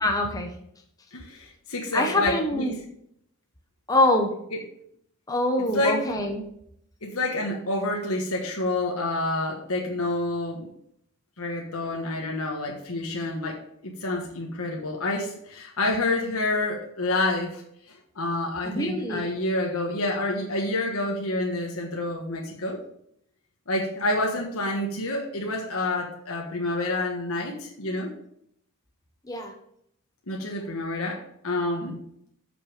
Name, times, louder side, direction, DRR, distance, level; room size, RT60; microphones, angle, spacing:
voice 1, 0.0-0.5 1.9-2.7 3.9-4.3 5.3-6.4 18.6-19.2 29.3-29.5, left 1 dB, 15° left, 2 dB, 1.0 m, -24 dB
voice 2, 1.1-2.8 4.5-4.6 5.6-6.0 7.0-10.7 11.4-13.6 13.8-17.6 17.9-22.8 23.7-28.1 30.3-32.0, left 2 dB, 70° left, 0 dB, 1.4 m, -28 dB
8.3 x 5.5 x 5.0 m, 0.71 s
head